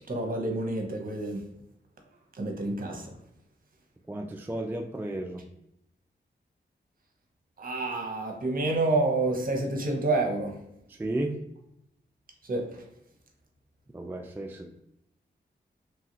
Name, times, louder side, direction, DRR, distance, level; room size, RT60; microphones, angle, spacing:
voice 1, 0.1-1.4 2.4-3.1 7.6-10.6 12.5-12.6, right 2 dB, 50° right, 2 dB, 0.8 m, -28 dB
voice 2, 4.1-5.4 10.9-11.4 13.9-14.7, right 1 dB, 10° right, 3 dB, 0.3 m, -33 dB
3.1 x 2.3 x 2.8 m, 0.80 s
cardioid pair, 50°, 19 cm